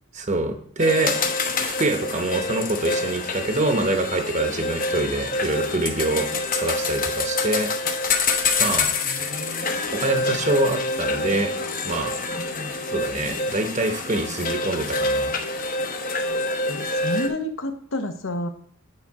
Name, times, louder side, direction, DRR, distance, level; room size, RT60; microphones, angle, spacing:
voice 1, 0.1-1.1 1.6-7.7 8.6-8.9 9.9-11.5 11.8-12.1 12.9-15.3, right 2 dB, 30° right, 6 dB, 0.8 m, -25 dB
sound 1, 0.8-17.3, left 3 dB, 40° left, 0.8 m, -26 dB
voice 2, 8.9-9.7 12.4-12.9 16.7-18.5, left 1 dB, 60° left, 7 dB, 0.9 m, -31 dB
8.9 x 4.8 x 4.7 m, 0.64 s
head